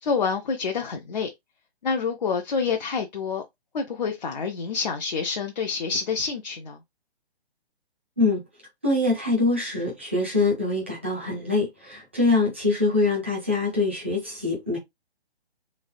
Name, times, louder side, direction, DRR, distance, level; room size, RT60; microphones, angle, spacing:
voice 1, 0.0-1.3 1.8-3.4 3.7-6.8, left 5 dB, 45° left, 0.5 m, -27 dB
voice 2, 8.8-14.8, left 3 dB, 10° right, 0.4 m, -24 dB
3.1 x 2.3 x 2.5 m
hypercardioid pair, 165°, 32 cm